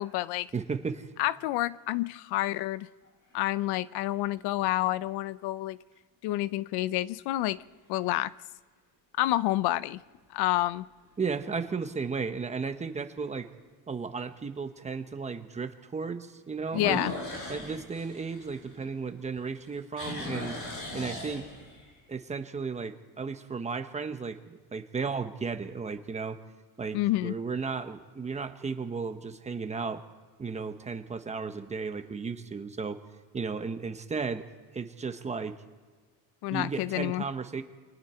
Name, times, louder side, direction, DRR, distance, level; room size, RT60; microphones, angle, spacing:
voice 1, 0.0-0.5 1.2-2.9 3.3-5.8 6.2-7.6 7.9-8.3 9.2-10.0 10.3-10.9 16.7-17.1 26.9-27.3 36.4-37.2, left 16 dB, 75° left, 17 dB, 0.7 m, -28 dB
voice 2, 0.5-1.1 11.2-13.5 13.9-17.0 17.5-20.6 20.9-21.5 22.1-26.4 26.8-30.0 30.4-33.0 33.3-34.4 34.7-35.5 36.5-37.6, right 5 dB, 15° right, 8 dB, 1.1 m, -34 dB
sound 1, 3.0-3.7 4.4-4.5 9.7-10.2 10.6-10.7 11.3-11.4 11.6-11.7 13.3-13.4 16.7-19.2 19.5-21.9, left 2 dB, 50° left, 7.5 m, -38 dB
29.0 x 23.5 x 4.5 m, 1.5 s
cardioid pair, 155°, 40 cm